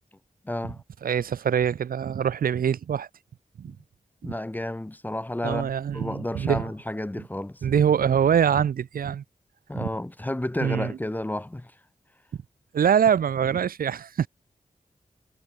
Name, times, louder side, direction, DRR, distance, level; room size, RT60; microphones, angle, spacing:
voice 1, 0.4-0.8 3.7-3.8 4.2-7.6 9.7-11.7, left 1 dB, 10° left, 0.6 m, -31 dB
voice 2, 1.0-3.1 3.6-3.7 4.2-4.3 5.4-6.7 7.6-9.2 9.7-9.9 10.6-11.0 12.7-14.3, right 8 dB, 85° right, 0.4 m, -24 dB
wide cardioid pair, 90°, 14 cm